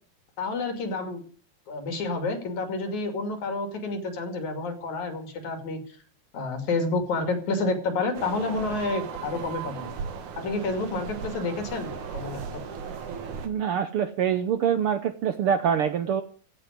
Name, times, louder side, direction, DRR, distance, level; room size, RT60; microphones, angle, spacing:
voice 1, 0.4-1.2 1.7-5.8 6.3-9.9 10.4-12.4, left 3 dB, 75° left, 6 dB, 4.1 m, -29 dB
sound 1, 8.1-13.5, right 6 dB, 90° right, 3.1 m, -36 dB
voice 2, 13.4-16.2, right 8 dB, 70° right, 10 dB, 1.4 m, -25 dB
16.0 x 6.4 x 9.7 m, 0.43 s
omnidirectional pair, 3.3 m